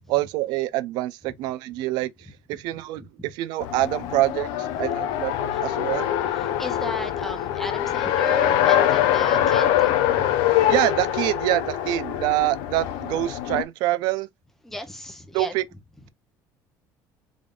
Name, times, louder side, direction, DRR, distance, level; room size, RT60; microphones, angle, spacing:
voice 1, 0.1-6.1 10.7-14.3 15.3-15.6, right 17 dB, 70° right, 0.4 m, -26 dB
Race car auto racing, 3.6-13.6, left 11 dB, 85° left, 0.6 m, -23 dB
voice 2, 6.3-10.3 14.6-15.5, left 1 dB, 5° left, 0.7 m, -35 dB
3.7 x 3.4 x 2.4 m
cardioid pair, 175°, 8 cm